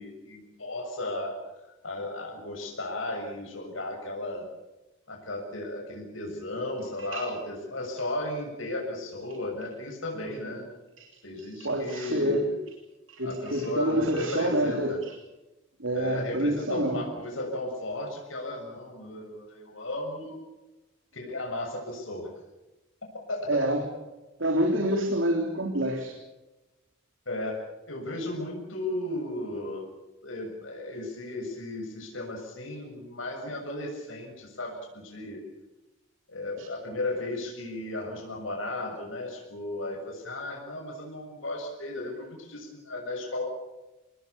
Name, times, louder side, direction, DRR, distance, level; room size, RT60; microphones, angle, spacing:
voice 1, 0.0-1.4 1.8-4.5 5.1-10.7 11.2-12.6 13.2-15.0 15.9-20.4 21.1-22.3 23.3-23.7 27.3-29.9 30.2-35.4 36.3-43.5, left 1 dB, 90° left, 1 dB, 7.0 m, -35 dB
voice 2, 11.4-12.5 13.1-15.1 15.8-17.0 23.5-23.9 24.4-26.1, right 1 dB, 85° right, 2 dB, 3.6 m, -27 dB
27.5 x 19.5 x 7.2 m, 1.0 s
head